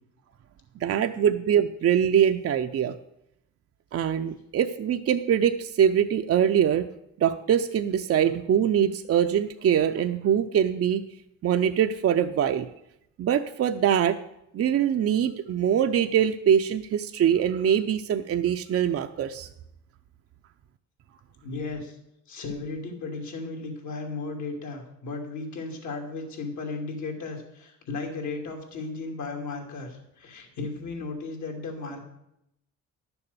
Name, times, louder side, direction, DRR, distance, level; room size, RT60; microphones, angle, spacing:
voice 1, 0.8-2.9 3.9-6.9 7.2-11.0 11.4-12.7 13.2-14.2 14.5-19.5, right 9 dB, 50° right, 7 dB, 0.6 m, -23 dB
voice 2, 21.4-22.0 22.3-32.0, left 3 dB, 70° left, 2 dB, 2.8 m, -35 dB
11.5 x 7.0 x 6.8 m, 0.81 s
cardioid pair, 90°, 30 cm